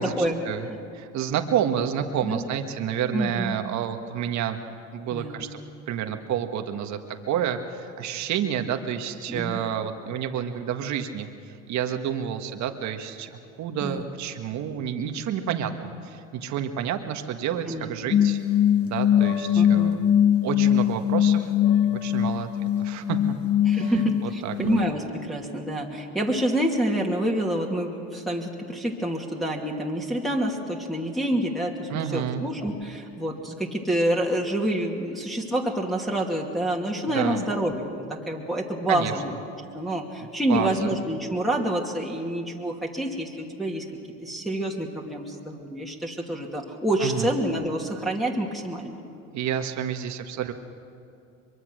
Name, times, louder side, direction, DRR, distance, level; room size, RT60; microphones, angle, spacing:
voice 1, 0.0-0.8 2.2-2.4 3.1-3.6 5.1-5.5 9.3-9.6 13.8-14.0 17.7-17.9 19.5-19.9 23.6-39.3 39.7-43.8 44.2-48.9, right 1 dB, ahead, -3 dB, 2.5 m, -27 dB
voice 2, 0.9-4.6 4.9-5.6 5.9-7.0 7.3-18.4 18.8-20.0 20.4-21.5 21.8-23.2 23.8-24.5 31.9-32.4 37.1-37.4 38.9-39.1 40.5-41.0 47.0-47.3 49.3-50.5, right 9 dB, 50° right, 6 dB, 1.6 m, -29 dB
sound 1, 18.1-24.9, left 10 dB, 40° left, 1.2 m, -22 dB
23.5 x 23.0 x 6.4 m, 2.5 s
hypercardioid pair, 90°, 37 cm